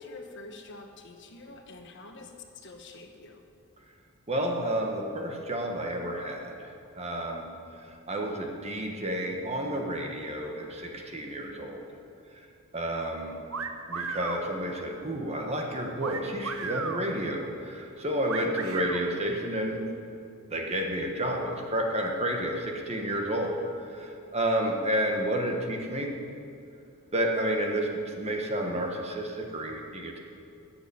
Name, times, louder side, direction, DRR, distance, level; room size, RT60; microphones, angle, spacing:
voice 1, 0.0-3.4, left 3 dB, 55° left, 4 dB, 1.2 m, -46 dB
voice 2, 4.3-7.4 7.7-11.8 12.7-13.4 13.9-19.8 20.5-23.6 23.9-26.1 27.1-30.2, right 1 dB, 30° right, 1 dB, 1.4 m, -30 dB
sound 1, 13.5-14.4 16.0-17.0 18.3-19.0, right 5 dB, 70° right, 1.0 m, -34 dB
13.5 x 7.2 x 8.6 m, 2.5 s
head